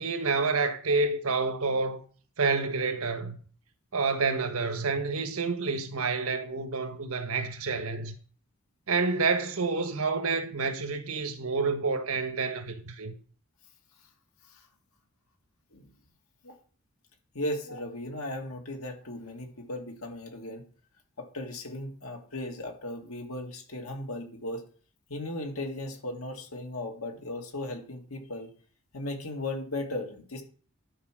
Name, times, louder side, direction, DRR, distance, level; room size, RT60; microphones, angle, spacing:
voice 1, 0.0-2.0 2.4-3.4 3.9-8.1 8.9-13.1, right 4 dB, 85° right, 1.3 m, -28 dB
voice 2, 17.3-20.6 21.2-24.6 25.1-28.5 28.9-30.4, left 1 dB, 80° left, 2.2 m, -36 dB
11.5 x 4.6 x 6.1 m
head